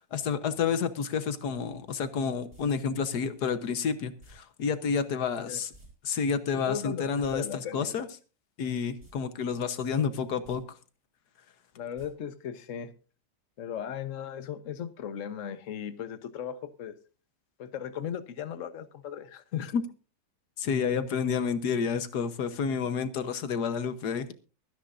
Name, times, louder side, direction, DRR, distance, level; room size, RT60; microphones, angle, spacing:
voice 1, 0.1-5.7 6.0-7.4 7.7-8.1 8.6-10.6 19.7-19.8 20.6-24.3, left 6 dB, 85° left, 11 dB, 1.6 m, -29 dB
sound 1, 2.5-2.6 4.2-4.3 5.7-5.9 6.1-6.2 7.1-7.4 9.0-9.2 9.5-9.6 10.3-10.6 12.0-12.1 12.4-12.5, right 1 dB, 35° right, 7.6 m, -52 dB
voice 2, 6.5-8.0 11.8-12.9 13.6-16.9 17.6-19.7, left 9 dB, 55° left, 10 dB, 1.3 m, -37 dB
23.5 x 10.5 x 2.6 m, 0.34 s
omnidirectional pair, 1.7 m